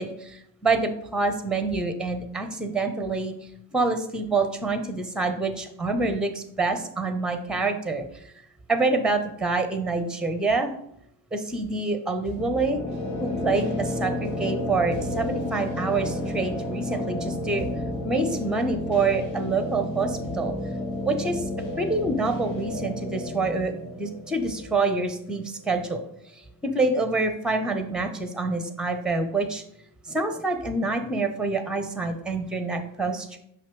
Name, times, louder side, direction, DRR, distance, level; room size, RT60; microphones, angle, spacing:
voice 1, 0.0-3.3 3.7-8.1 8.7-10.7 11.3-12.8 13.2-17.7 18.0-20.5 21.0-21.5 21.8-26.0 26.6-29.6 30.1-33.4, right 3 dB, ahead, 7 dB, 0.9 m, -26 dB
sound 1, 12.2-25.9, left 1 dB, 85° left, 1.3 m, -32 dB
5.7 x 5.3 x 3.2 m, 0.73 s
hypercardioid pair, 50°, 50 cm